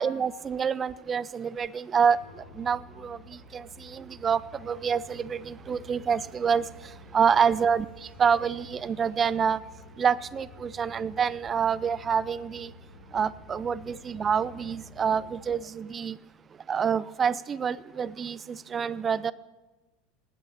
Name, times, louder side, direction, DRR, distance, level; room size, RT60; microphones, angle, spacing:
voice 1, 0.0-9.6 10.0-12.7 13.1-16.2 16.7-19.3, right 7 dB, 30° right, 20 dB, 0.5 m, -27 dB
sound 1, 2.0-15.5, left 2 dB, 80° left, 3.0 m, -50 dB
18.5 x 9.7 x 7.0 m, 1.2 s
figure-of-eight pair, 75°, 0 cm